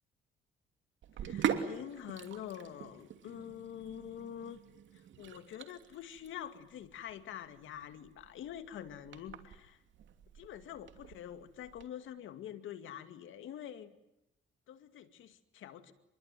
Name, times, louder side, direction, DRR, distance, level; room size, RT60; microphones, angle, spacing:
Sink (filling or washing), 1.0-11.9, right 8 dB, 70° right, 2.8 m, -42 dB
voice 1, 1.2-4.6 4.9-9.8 10.3-14.0 14.7-15.9, left 10 dB, 80° left, 9 dB, 2.3 m, -46 dB
25.5 x 22.5 x 9.3 m, 0.86 s
cardioid pair, 90°, 20 cm